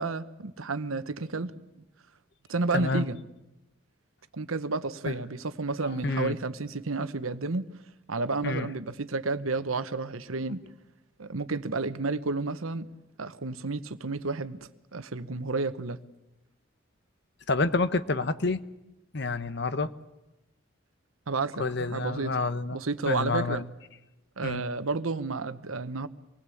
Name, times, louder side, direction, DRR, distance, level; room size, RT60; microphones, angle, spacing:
voice 1, 0.0-1.8 2.5-3.2 4.3-7.7 8.1-10.6 11.2-12.9 13.2-14.6 14.9-16.0 21.3-22.3 22.7-23.6 24.4-26.1, right 3 dB, 90° right, 1.1 m, -31 dB
voice 2, 2.7-3.0 5.1-5.2 5.8-6.3 8.4-8.7 17.5-18.6 19.1-19.9 21.6-22.8 23.0-23.6 24.4-24.6, left 3 dB, 55° left, 1.0 m, -28 dB
26.0 x 19.5 x 8.5 m
head